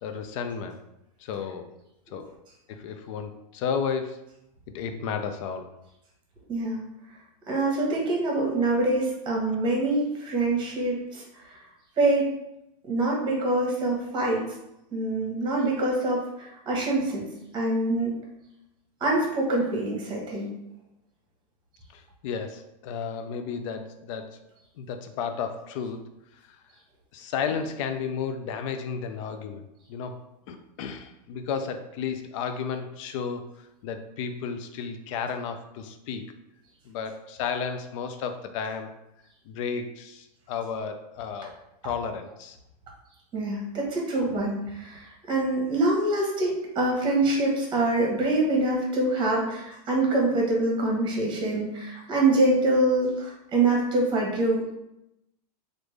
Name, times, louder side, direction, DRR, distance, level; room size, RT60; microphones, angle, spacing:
voice 1, 0.0-0.8 1.2-1.7 2.1-2.3 2.7-4.2 4.7-5.7 21.9-24.4 24.8-26.1 27.1-29.6 29.9-30.2 30.5-33.4 33.8-36.2 36.9-38.9 39.5-41.6 41.8-42.6, left 6 dB, 50° left, 7 dB, 0.4 m, -33 dB
voice 2, 6.5-6.8 7.5-11.6 12.0-12.3 12.9-14.4 14.9-17.3 17.5-18.2 19.0-20.5 43.3-54.7, right 2 dB, 20° right, -2 dB, 1.0 m, -25 dB
3.4 x 2.6 x 3.2 m, 0.86 s
supercardioid pair, 140°, 21 cm